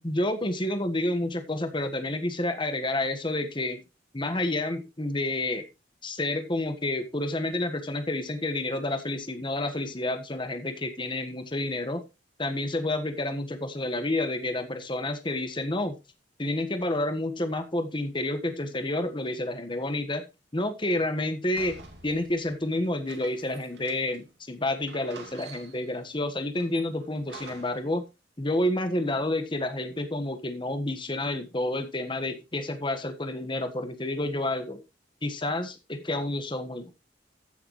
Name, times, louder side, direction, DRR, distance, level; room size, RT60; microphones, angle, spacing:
voice 1, 0.0-3.8 4.1-5.6 6.0-12.0 12.4-15.9 16.4-20.2 20.5-28.0 28.4-34.8 35.2-36.9, left 1 dB, 25° left, 8 dB, 1.4 m, -29 dB
sound 1, 21.6-24.3 24.6-24.7 24.9-26.0 26.6-27.9, right 4 dB, 70° right, 2.4 m, -48 dB
15.0 x 6.9 x 3.2 m, 0.27 s
head